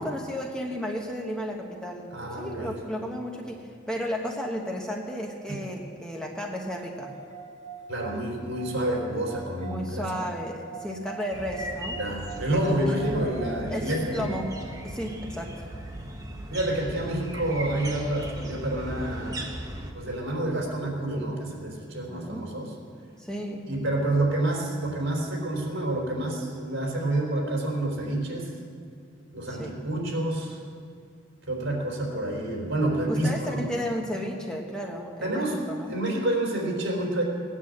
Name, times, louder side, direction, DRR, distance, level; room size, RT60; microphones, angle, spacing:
voice 1, 0.0-2.1 2.4-7.1 9.6-12.0 12.5-13.0 13.7-14.5 14.8-15.7 22.1-22.7 23.2-23.7 29.5-29.7 33.1-35.9, equal, 5° left, 0 dB, 1.1 m, -33 dB
voice 2, 2.1-2.7 7.9-10.1 12.0-14.3 16.5-19.5 19.9-22.7 23.7-28.5 29.3-30.6 31.5-33.8 35.2-35.6 35.9-37.2, right 1 dB, 70° right, -1 dB, 4.0 m, -28 dB
sound 1, 6.7-18.0, right 5 dB, 35° right, 0.9 m, -46 dB
sound 2, 11.3-19.9, right 1 dB, 15° right, 1.2 m, -38 dB
18.0 x 9.8 x 7.9 m, 2.3 s
head